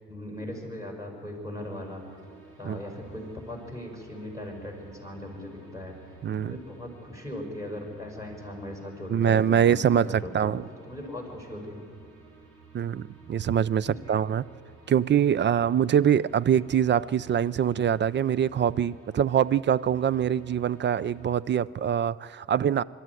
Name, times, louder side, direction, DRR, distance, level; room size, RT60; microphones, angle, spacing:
voice 1, 0.1-2.0 2.6-6.0 6.4-10.6 10.9-11.8 13.9-14.2, left 1 dB, 10° right, 5.5 m, -39 dB
sound 1, 1.6-21.4, right 4 dB, 85° right, 3.8 m, -54 dB
voice 2, 6.2-6.6 9.1-10.6 12.7-14.4 14.9-22.8, right 9 dB, 40° right, 0.4 m, -24 dB
22.5 x 13.0 x 9.6 m
cardioid pair, 90°, 30 cm